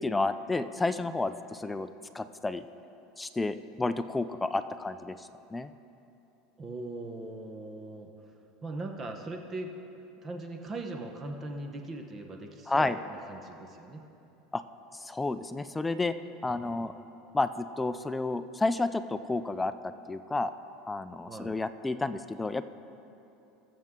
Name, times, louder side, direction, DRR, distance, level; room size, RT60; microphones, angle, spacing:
voice 1, 0.0-1.9 2.1-2.6 3.2-5.7 12.7-13.0 14.5-14.6 14.9-16.1 16.4-16.9 17.3-20.5 20.9-22.6, left 2 dB, 10° left, 11 dB, 0.3 m, -31 dB
voice 2, 6.6-8.3 8.6-9.7 10.2-14.0 16.5-16.7 21.3-21.6, right 2 dB, 25° right, 4 dB, 1.0 m, -40 dB
20.5 x 7.4 x 3.7 m, 2.9 s
supercardioid pair, 135°, 0 cm